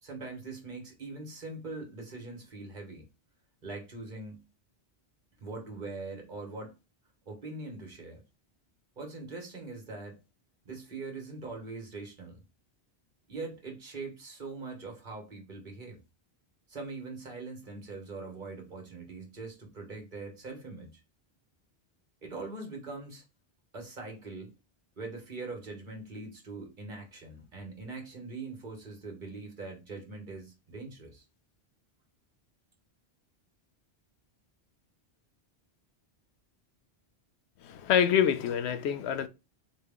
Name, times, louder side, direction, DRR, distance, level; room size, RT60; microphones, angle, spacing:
voice 1, 0.0-3.1 3.6-4.4 5.4-6.8 7.2-8.2 9.0-10.2 10.6-12.4 13.3-16.0 16.7-21.0 22.2-23.2 23.7-24.5 25.0-31.2, right 3 dB, 50° right, 1.4 m, -42 dB
voice 2, 37.6-39.3, left 8 dB, 85° left, 0.8 m, -26 dB
4.2 x 3.1 x 3.6 m
omnidirectional pair, 1.1 m